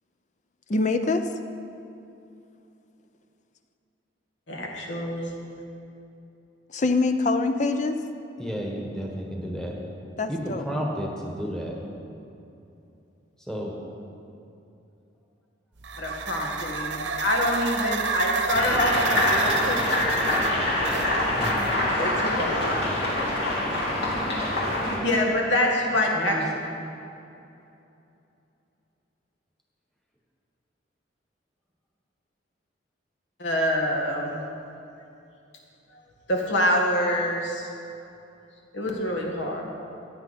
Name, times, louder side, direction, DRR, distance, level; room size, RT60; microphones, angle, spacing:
voice 1, 0.7-1.3 6.7-8.0 10.2-10.7, left 3 dB, 40° left, 8 dB, 0.5 m, -24 dB
voice 2, 4.5-5.3 16.0-20.4 22.0-22.9 25.0-26.5 33.4-34.4 36.3-37.7 38.7-39.6, left 1 dB, 75° left, 0 dB, 1.8 m, -26 dB
voice 3, 8.4-9.7 10.3-11.7 13.5-13.7 21.4-21.7 26.1-26.4, equal, 5° left, -1 dB, 1.4 m, -32 dB
sound 1, 15.8-22.0, right 4 dB, 75° right, 1.0 m, -30 dB
sound 2, 18.5-25.0, left 1 dB, 60° left, 2.6 m, -25 dB
14.5 x 9.5 x 4.3 m, 2.8 s
head